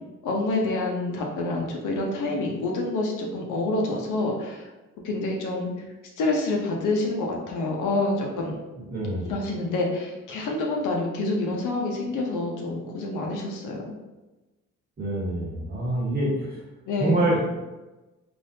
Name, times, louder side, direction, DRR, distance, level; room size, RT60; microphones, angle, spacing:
voice 1, 0.2-4.6 5.0-5.7 6.2-8.6 9.3-13.9 16.9-17.2, left 2 dB, 85° left, 0 dB, 0.8 m, -27 dB
voice 2, 8.9-9.3 15.0-16.6 17.0-17.4, right 1 dB, 30° right, -4 dB, 1.3 m, -26 dB
3.4 x 2.6 x 2.7 m, 1.1 s
cardioid pair, 90°, 30 cm